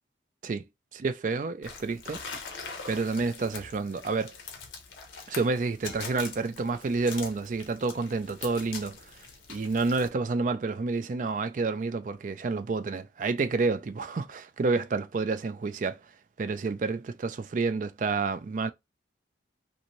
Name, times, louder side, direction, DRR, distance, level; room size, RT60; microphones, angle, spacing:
voice 1, 0.9-2.2 2.9-4.4 5.3-9.1 9.5-16.0 16.4-18.7, right 3 dB, 45° right, 0.3 m, -29 dB
sound 1, 1.6-10.1, left 5 dB, 85° left, 0.7 m, -43 dB
2.6 x 2.6 x 3.0 m
head